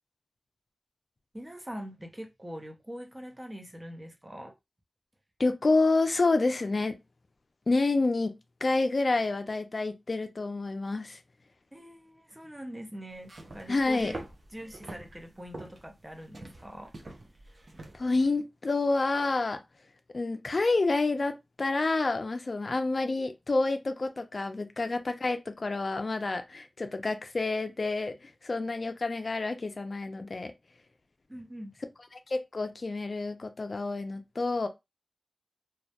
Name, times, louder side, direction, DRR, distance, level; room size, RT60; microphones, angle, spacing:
voice 1, 1.3-4.5 11.7-14.2 14.5-16.9 17.4-17.8 31.3-31.7, equal, 20° right, 0.6 m, -43 dB
voice 2, 5.4-7.0 7.7-8.3 8.6-11.2 13.7-14.1 17.9-19.6 20.1-30.5 32.3-34.7, left 3 dB, 60° left, 0.3 m, -28 dB
sound 1, 13.1-18.3, right 2 dB, 65° right, 0.5 m, -46 dB
2.2 x 2.0 x 2.8 m
cardioid pair, 45°, 0 cm